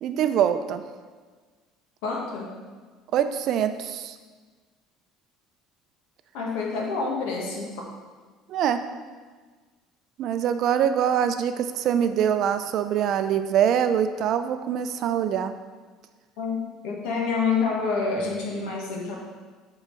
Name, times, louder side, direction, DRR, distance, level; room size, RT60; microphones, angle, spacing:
voice 1, 0.0-0.8 3.1-4.2 8.5-8.8 10.2-15.5, right 9 dB, 50° right, 9 dB, 0.4 m, -24 dB
voice 2, 2.0-2.5 6.3-7.8 16.4-19.2, left 4 dB, 85° left, -1 dB, 1.4 m, -28 dB
6.7 x 3.9 x 4.5 m, 1.4 s
cardioid pair, 140°, 0 cm